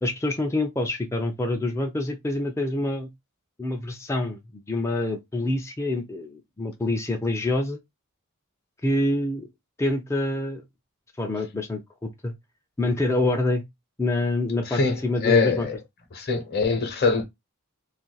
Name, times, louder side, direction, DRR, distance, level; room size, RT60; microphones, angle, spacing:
voice 1, 0.0-3.1 3.6-7.8 8.8-9.5 9.8-10.6 11.2-12.3 12.8-13.6 14.0-15.7, left 2 dB, 15° left, 0.4 m, -26 dB
voice 2, 14.6-15.8 16.1-17.2, left 4 dB, 45° left, 0.8 m, -23 dB
2.5 x 2.4 x 3.8 m
head